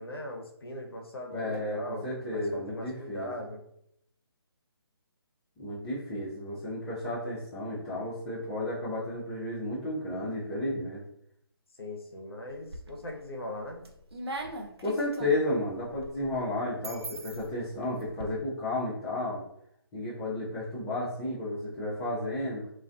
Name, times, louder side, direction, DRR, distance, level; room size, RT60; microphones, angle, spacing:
voice 1, 0.0-2.1 2.3-3.6 11.8-13.8, left 1 dB, 70° left, 2 dB, 0.6 m, -40 dB
voice 2, 1.3-3.3 5.6-11.0 14.8-19.4 19.9-22.6, left 1 dB, 15° left, -10 dB, 0.5 m, -32 dB
sound 1, 12.5-13.2 13.6-18.2, right 2 dB, 80° right, 0.5 m, -41 dB
2.3 x 2.2 x 2.4 m, 0.73 s
figure-of-eight pair, 145°, 13 cm